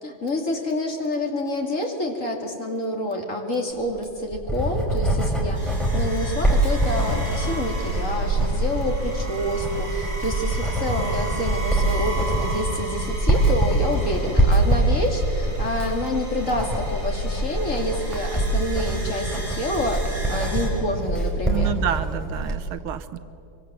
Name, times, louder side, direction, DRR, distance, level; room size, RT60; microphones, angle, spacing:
voice 1, 0.0-21.7, left 1 dB, 35° left, 2 dB, 2.9 m, -28 dB
Writing, 3.9-22.6, right 1 dB, ahead, 4.2 m, -24 dB
sound 1, 5.5-20.7, right 1 dB, 60° right, 8.8 m, -31 dB
voice 2, 21.4-23.2, right 10 dB, 75° right, 12 dB, 1.7 m, -29 dB
24.5 x 24.0 x 7.6 m, 2.7 s
omnidirectional pair, 2.4 m